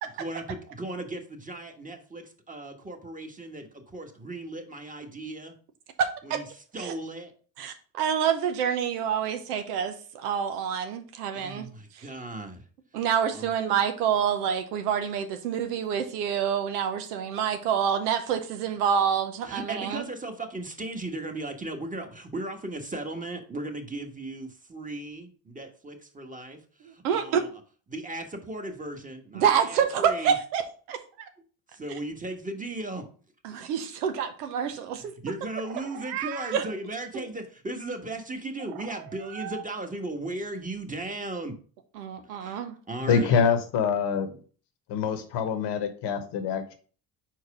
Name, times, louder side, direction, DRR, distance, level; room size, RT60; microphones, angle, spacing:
voice 1, 0.1-5.5 6.2-7.3 11.3-12.7 12.9-13.5 19.4-27.5 27.9-30.4 31.7-33.1 33.5-33.6 34.7-41.5 42.2-42.6 42.9-43.4, right 2 dB, 15° right, 5 dB, 1.4 m, -37 dB
voice 2, 6.0-6.4 6.8-6.9 7.6-11.7 12.9-20.0 27.0-27.4 29.3-31.3 33.4-35.1 36.5-36.6 42.0-42.8, right 8 dB, 90° right, 8 dB, 0.8 m, -27 dB
Meow, 35.6-36.7 38.6-39.7, right 12 dB, 65° right, 0.5 m, -38 dB
voice 3, 43.0-44.4 44.9-46.7, left 6 dB, 65° left, 9 dB, 1.1 m, -25 dB
4.7 x 4.5 x 4.8 m, 0.41 s
hypercardioid pair, 65°, 45 cm